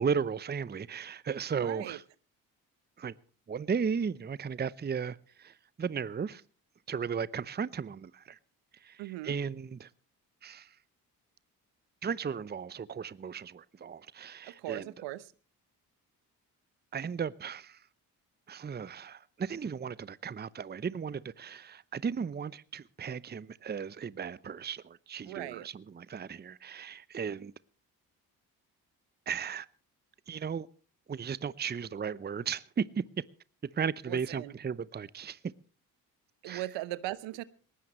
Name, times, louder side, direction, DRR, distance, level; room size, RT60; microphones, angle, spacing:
voice 1, 0.0-2.0 3.0-3.1 3.5-6.4 6.9-8.4 8.8-9.9 10.4-10.7 12.0-14.9 16.9-17.8 18.5-27.5 29.3-29.7 30.3-30.7 31.1-32.9 33.8-35.4 36.4-36.7, right 6 dB, 20° right, 0.7 m, -35 dB
voice 2, 1.6-2.0 9.0-9.4 14.4-15.2 25.3-25.7 34.1-34.5 36.4-37.4, right 16 dB, 70° right, 1.0 m, -39 dB
21.0 x 19.0 x 3.1 m
hypercardioid pair, 45°, 46 cm